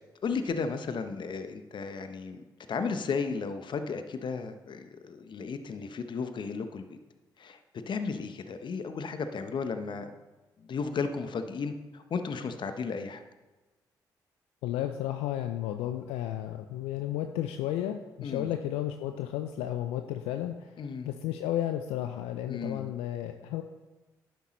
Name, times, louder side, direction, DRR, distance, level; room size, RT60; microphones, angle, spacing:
voice 1, 0.2-6.9 7.4-7.6 7.9-10.1 10.7-13.2 18.2-18.5 20.8-21.1 22.5-22.9, left 5 dB, 55° left, 8 dB, 0.9 m, -34 dB
voice 2, 14.6-20.7 21.0-23.6, left 12 dB, 80° left, 7 dB, 0.4 m, -33 dB
10.5 x 8.1 x 3.1 m, 1.2 s
hypercardioid pair, 45°, 10 cm